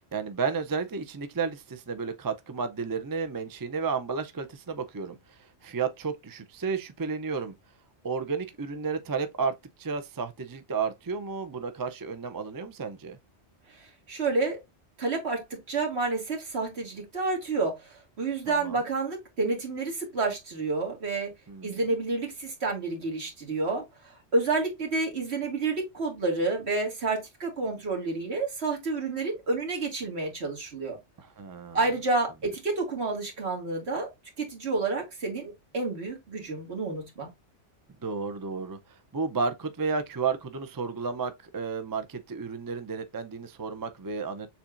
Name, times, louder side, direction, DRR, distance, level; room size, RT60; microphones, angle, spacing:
voice 1, 0.1-7.5 8.0-13.2 18.6-18.8 21.5-21.8 31.2-31.8 38.0-38.8 39.1-44.5, right 5 dB, 30° right, 0.4 m, -32 dB
voice 2, 14.1-14.6 15.0-21.3 21.6-23.8 24.3-31.0 31.7-34.1 34.4-37.3, right 3 dB, 60° right, 2.0 m, -29 dB
6.9 x 2.9 x 2.5 m
omnidirectional pair, 1.2 m